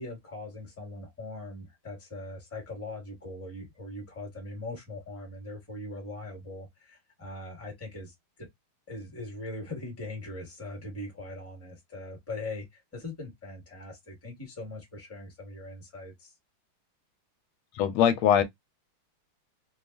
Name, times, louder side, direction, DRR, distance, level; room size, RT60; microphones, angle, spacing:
voice 1, 0.0-8.5 8.9-16.3, left 2 dB, 10° left, 1.0 m, -41 dB
voice 2, 17.7-18.4, left 9 dB, 80° left, 1.4 m, -22 dB
3.3 x 2.3 x 2.4 m
omnidirectional pair, 2.3 m